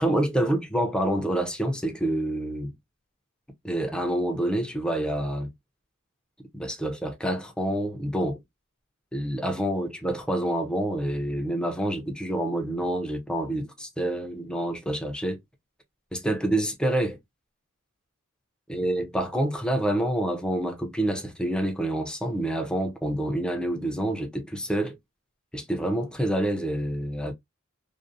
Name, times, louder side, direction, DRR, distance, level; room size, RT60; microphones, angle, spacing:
voice 1, 0.0-2.7 3.6-5.5 6.5-8.4 9.1-15.4 16.1-17.2 18.7-25.0 25.5-27.3, right 1 dB, 5° left, 0.5 m, -27 dB
2.6 x 2.0 x 2.5 m
head